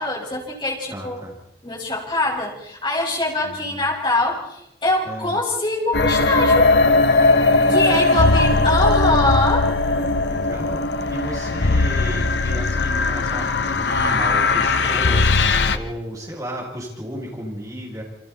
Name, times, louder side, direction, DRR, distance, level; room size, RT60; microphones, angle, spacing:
voice 1, 0.0-1.3 1.6-6.7 7.7-9.7, left 2 dB, 25° left, -1 dB, 6.0 m, -23 dB
voice 2, 0.9-1.3 3.4-3.9 5.0-5.4 7.5-8.8 9.9-18.0, equal, 20° right, -4 dB, 8.0 m, -34 dB
sound 1, 5.9-15.8, left 3 dB, 85° left, 1.3 m, -18 dB
29.5 x 25.5 x 4.3 m, 0.78 s
head